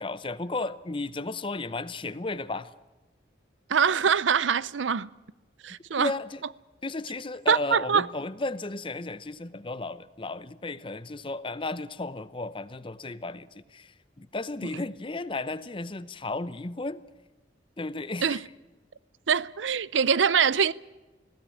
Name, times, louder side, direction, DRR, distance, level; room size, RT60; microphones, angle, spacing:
voice 1, 0.0-2.7 6.0-6.4 6.8-17.0 17.8-18.4, left 2 dB, 30° left, 0.7 m, -34 dB
voice 2, 3.7-5.1 5.6-6.1 7.5-8.1 18.2-18.4 19.3-20.7, right 6 dB, 85° right, 0.6 m, -23 dB
20.0 x 16.0 x 8.6 m
head